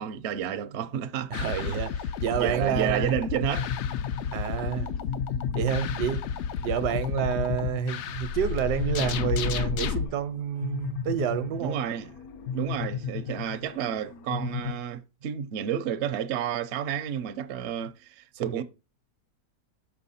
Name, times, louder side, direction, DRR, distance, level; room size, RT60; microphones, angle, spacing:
voice 1, 0.0-1.8 2.4-3.7 6.9-7.0 11.6-12.1 12.5-18.6, right 9 dB, 60° right, 0.7 m, -31 dB
sound 1, 1.3-10.0, left 7 dB, 85° left, 0.6 m, -31 dB
voice 2, 1.3-3.1 4.3-4.9 5.5-6.3 6.6-11.9 18.3-18.6, right 9 dB, 75° right, 1.2 m, -29 dB
sound 2, 3.5-14.8, left 7 dB, 65° left, 1.1 m, -35 dB
5.9 x 5.6 x 4.1 m
omnidirectional pair, 1.8 m